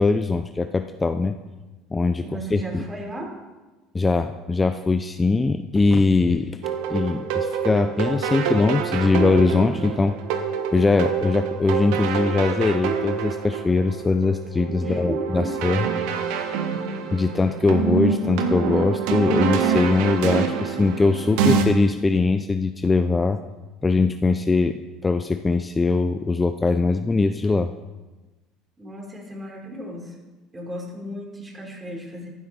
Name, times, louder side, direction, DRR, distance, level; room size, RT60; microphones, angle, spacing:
voice 1, 0.0-1.4 1.9-2.3 2.5-2.8 3.9-6.6 6.9-10.2 10.7-15.9 17.1-23.4 23.8-27.7, left 3 dB, 20° left, 8 dB, 0.7 m, -21 dB
voice 2, 2.2-3.4 14.8-15.6 28.8-30.1 30.5-32.3, right 1 dB, 20° right, -1 dB, 4.9 m, -35 dB
sound 1, 6.6-21.6, right 6 dB, 75° right, 1.4 m, -26 dB
14.5 x 12.0 x 4.4 m, 1.2 s
hypercardioid pair, 80°, 0 cm